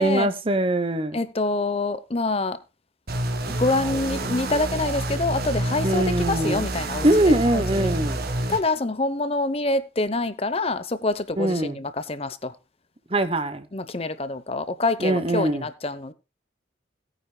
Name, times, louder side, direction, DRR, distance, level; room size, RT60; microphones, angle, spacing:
voice 1, 0.0-1.2 5.8-6.6 7.0-8.2 11.4-11.7 13.1-13.7 15.0-15.6, right 1 dB, 30° right, 1.0 m, -22 dB
voice 2, 1.1-2.6 3.5-7.9 8.5-12.5 13.7-16.1, left 2 dB, 30° left, 0.8 m, -26 dB
sound 1, 3.1-8.6, right 1 dB, 55° right, 1.7 m, -28 dB
17.5 x 9.3 x 2.3 m
head